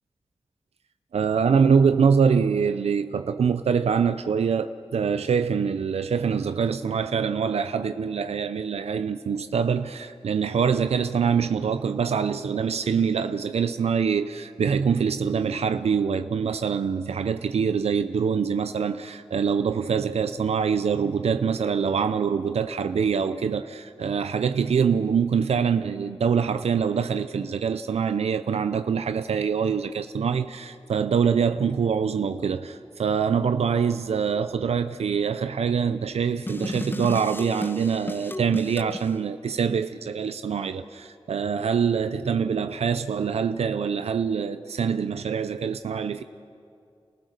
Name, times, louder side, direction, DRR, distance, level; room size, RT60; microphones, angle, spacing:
voice 1, 1.1-46.2, right 6 dB, 90° right, 0.5 m, -24 dB
sound 1, 36.5-39.1, left 2 dB, 20° left, 0.7 m, -34 dB
29.0 x 15.5 x 6.6 m
cardioid pair, 55°, 10 cm